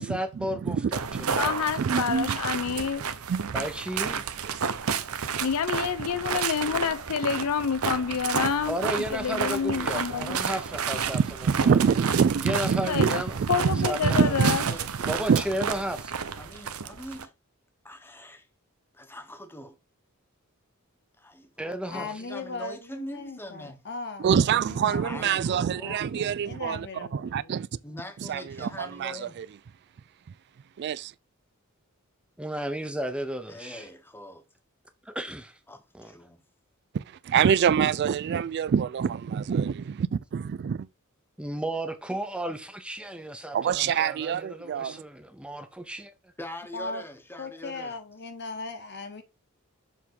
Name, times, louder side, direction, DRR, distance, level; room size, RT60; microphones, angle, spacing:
voice 1, 0.0-1.5 3.5-4.2 8.7-11.8 12.4-13.4 13.8-14.3 15.1-16.1 21.6-22.1 32.4-33.9 35.1-35.6 35.9-36.1 41.4-46.1, right 1 dB, 5° right, 0.8 m, -33 dB
voice 2, 0.7-1.4 1.8-2.4 3.3-3.6 4.4-4.8 11.1-14.8 15.0-15.4 24.2-26.9 27.1-27.7 28.3-29.5 30.8-31.1 36.9-40.9 43.5-45.0, right 7 dB, 50° right, 0.3 m, -26 dB
sound 1, 0.9-17.3, right 6 dB, 75° right, 0.8 m, -31 dB
voice 3, 1.3-3.1 5.4-8.8 9.1-10.4 12.9-13.2 13.5-14.6, left 6 dB, 80° left, 0.5 m, -28 dB
voice 4, 14.0-16.0 16.4-17.3 17.8-18.5 18.9-19.8 21.2-23.8 25.0-26.1 27.8-29.5 33.5-34.4 35.7-36.4 46.4-48.0, equal, 10° left, 1.1 m, -43 dB
voice 5, 21.9-24.3 24.7-27.5 46.7-47.0 47.4-49.2, left 3 dB, 50° left, 1.3 m, -38 dB
7.1 x 3.7 x 4.6 m
head